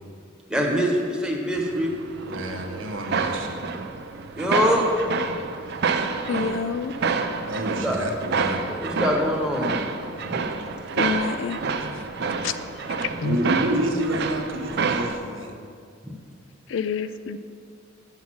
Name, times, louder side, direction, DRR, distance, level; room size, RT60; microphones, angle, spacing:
voice 1, 0.5-1.9 4.3-4.9 7.8-8.0 8.7-9.7 10.3-10.4 11.8-11.9 13.2-13.4 16.0-16.1, equal, 5° right, -1 dB, 1.0 m, -24 dB
sound 1, 1.5-15.2, right 4 dB, 55° right, 0.5 m, -28 dB
voice 2, 2.2-3.6 7.5-8.6 13.2-15.5, right 1 dB, 70° right, 2 dB, 1.0 m, -28 dB
voice 3, 6.3-6.9 11.0-11.6 11.9-12.0 12.4-12.6 13.0-13.4 16.7-17.4, left 6 dB, 65° left, 12 dB, 0.4 m, -28 dB
7.1 x 5.7 x 6.2 m, 2.3 s
head